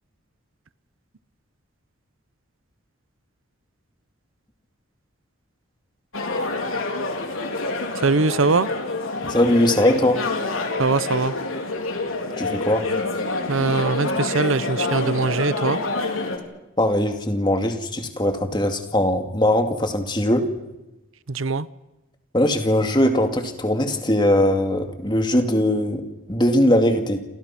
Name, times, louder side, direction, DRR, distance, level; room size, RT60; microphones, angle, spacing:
sound 1, 6.1-16.4, left 2 dB, 80° left, 4.0 m, -27 dB
voice 1, 8.0-8.7 10.8-11.3 13.5-15.8 21.3-21.7, right 4 dB, 75° right, 17 dB, 0.8 m, -21 dB
voice 2, 9.2-10.2 12.4-12.8 16.8-20.5 22.3-27.2, left 1 dB, 20° left, 5 dB, 2.4 m, -20 dB
28.5 x 28.0 x 6.0 m, 1.0 s
head